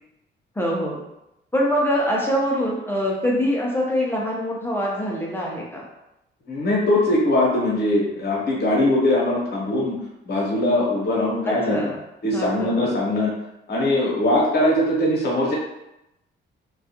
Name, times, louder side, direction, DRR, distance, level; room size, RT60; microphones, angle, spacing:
voice 1, 0.6-1.0 1.5-5.9 11.4-12.0 12.3-12.9, equal, 10° left, -4 dB, 0.5 m, -24 dB
voice 2, 6.5-10.0 10.2-11.8 12.2-13.3 13.7-15.5, left 1 dB, 55° left, -4 dB, 0.9 m, -21 dB
2.3 x 2.2 x 2.8 m, 0.90 s
cardioid pair, 90°, 20 cm